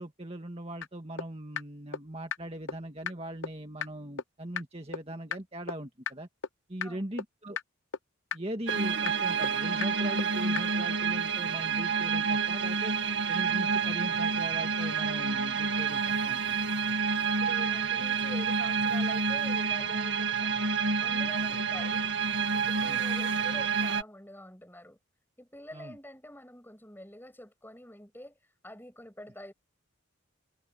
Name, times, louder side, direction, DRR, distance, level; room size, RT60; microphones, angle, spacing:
voice 1, 0.0-6.3 6.7-7.6 8.3-12.9 13.3-16.7 22.8-23.0 25.7-26.0, right 1 dB, 30° right, 1.9 m, -40 dB
sound 1, 0.8-0.9 1.2-1.3 1.6-1.7 1.9-2.0 2.3-2.4 2.7-2.8 3.1-3.2 3.4-3.5 3.8-3.9 4.2-4.3 4.6-4.7 4.9-5.0 5.3-5.4 5.7-5.8 6.1-6.2 6.4-6.5 6.8-6.9 7.2-7.3 7.6-7.7 7.9-8.0 8.3-8.4 8.7-8.8 9.1-9.2 9.4-9.5 9.8-9.9 10.2-10.3 10.6-10.7, left 6 dB, 70° left, 0.8 m, -32 dB
sound 2, 8.7-24.0, right 5 dB, 60° right, 2.1 m, -29 dB
voice 2, 17.3-20.6 21.0-22.1 22.5-25.0 25.4-28.4 28.6-29.5, left 1 dB, 10° left, 7.6 m, -47 dB
head